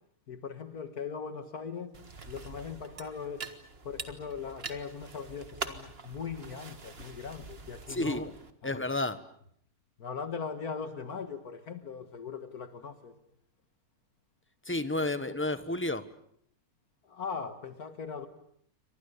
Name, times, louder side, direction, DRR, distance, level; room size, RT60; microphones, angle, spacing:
voice 1, 0.3-1.9 2.3-3.5 3.8-8.2 8.6-8.7 10.0-13.1 17.0-18.3, left 6 dB, 75° left, 2.1 m, -39 dB
sound 1, 1.9-8.5, right 4 dB, 40° right, 1.8 m, -44 dB
voice 2, 7.9-8.3 8.6-9.2 14.6-16.1, left 2 dB, 10° left, 1.1 m, -31 dB
29.0 x 25.0 x 6.9 m
omnidirectional pair, 1.7 m